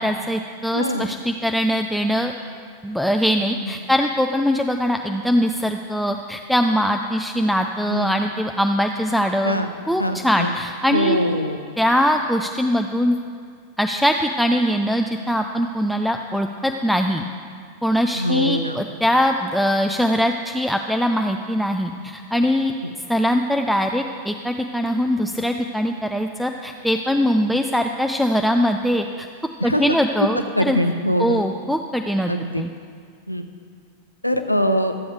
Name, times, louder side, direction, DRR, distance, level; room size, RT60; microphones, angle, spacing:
voice 1, 0.0-2.3 2.8-9.6 9.9-11.2 11.8-13.2 13.8-17.2 17.8-22.7 23.1-29.3 29.6-30.8 31.2-32.3 32.6-32.7, equal, ahead, 4 dB, 0.4 m, -22 dB
voice 2, 0.7-1.1 3.5-3.6 7.9-8.1 9.4-9.7 10.0-10.5 10.9-11.6 18.1-18.8 22.8-22.9 29.6-30.0 30.6-31.4 32.3-32.6 33.3-33.5 34.2-34.9, equal, 90° left, 7 dB, 0.5 m, -22 dB
13.5 x 7.8 x 4.6 m, 2.2 s
figure-of-eight pair, 90°, 0 cm